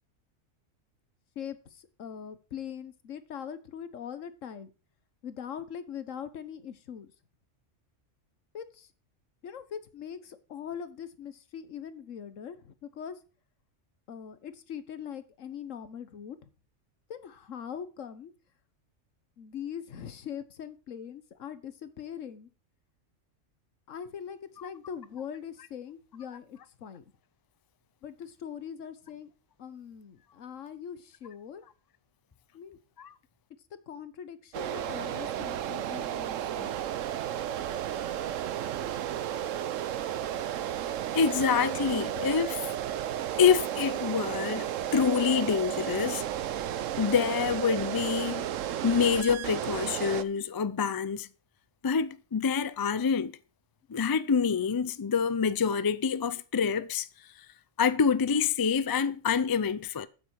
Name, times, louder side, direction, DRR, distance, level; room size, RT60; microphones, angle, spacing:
voice 1, 1.4-4.7 5.2-7.1 8.5-8.9 9.4-13.2 14.1-16.4 17.1-18.3 19.4-22.5 23.9-27.0 28.0-29.3 29.6-31.6 32.5-32.8 33.9-36.8, left 8 dB, 85° left, 1.4 m, -41 dB
sound 1, 34.5-50.2, right 10 dB, 85° right, 1.1 m, -33 dB
voice 2, 41.1-42.7 43.4-44.7 44.9-46.3 47.0-48.5 48.8-51.3 51.8-53.3 53.9-57.1 57.8-60.1, left 6 dB, 40° left, 0.3 m, -26 dB
8.8 x 8.6 x 4.7 m
omnidirectional pair, 1.3 m